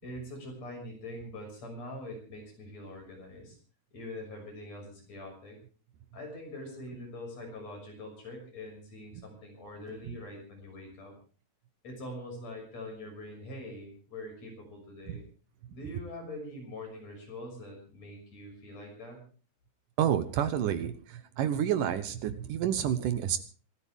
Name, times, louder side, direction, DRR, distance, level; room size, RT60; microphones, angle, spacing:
voice 1, 0.0-3.6 3.9-5.6 6.1-11.1 11.8-15.3 15.7-19.2, left 1 dB, 40° left, 2 dB, 7.2 m, -43 dB
voice 2, 20.0-23.4, right 9 dB, 70° right, 11 dB, 2.1 m, -29 dB
26.0 x 13.0 x 3.6 m, 0.40 s
omnidirectional pair, 4.7 m